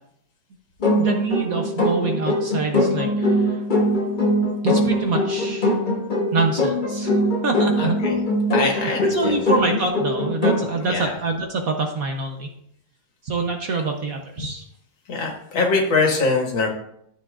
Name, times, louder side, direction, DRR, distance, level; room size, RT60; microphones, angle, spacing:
sound 1, 0.8-10.8, left 1 dB, 35° left, 0.9 m, -22 dB
voice 1, 1.0-3.6 4.6-5.7 6.3-8.0 8.7-12.5 13.2-14.7, right 3 dB, 55° right, 2 dB, 1.1 m, -26 dB
voice 2, 7.8-8.2 8.5-9.5 10.8-11.2 14.4-14.5 15.1-16.7, left 3 dB, 70° left, 1 dB, 2.3 m, -23 dB
13.0 x 7.4 x 2.5 m, 0.72 s
omnidirectional pair, 2.2 m